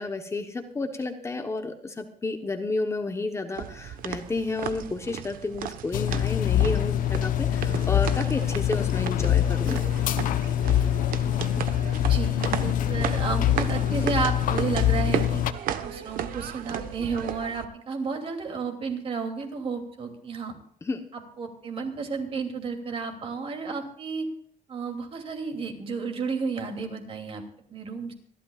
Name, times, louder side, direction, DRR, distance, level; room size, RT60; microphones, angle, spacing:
voice 1, 0.0-9.8 20.8-21.0, left 3 dB, 20° left, 6 dB, 1.0 m, -31 dB
sound 1, 3.5-17.6, right 9 dB, 75° right, 1.1 m, -35 dB
sound 2, 5.9-15.5, left 11 dB, 70° left, 0.9 m, -24 dB
voice 2, 12.0-15.4 15.8-20.5 21.1-24.3 24.7-27.4 27.7-28.1, right 5 dB, 40° right, 4 dB, 2.8 m, -32 dB
26.0 x 12.0 x 2.4 m, 0.63 s
cardioid pair, 155°, 15 cm